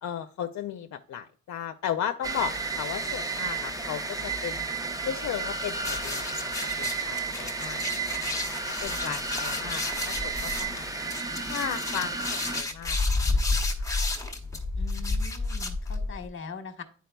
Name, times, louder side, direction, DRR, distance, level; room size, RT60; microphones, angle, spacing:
voice 1, 0.0-4.7 5.0-6.5 6.8-8.2 8.8-10.9 11.5-13.0 13.3-13.7, left 9 dB, 70° left, 7 dB, 0.5 m, -35 dB
sound 1, 2.2-12.6, right 4 dB, 10° right, 0.5 m, -32 dB
sound 2, 5.8-16.3, left 3 dB, 10° left, 0.9 m, -31 dB
voice 2, 14.7-16.8, left 5 dB, 45° left, 7 dB, 1.0 m, -41 dB
10.5 x 4.5 x 2.2 m, 0.43 s
wide cardioid pair, 115°, 29 cm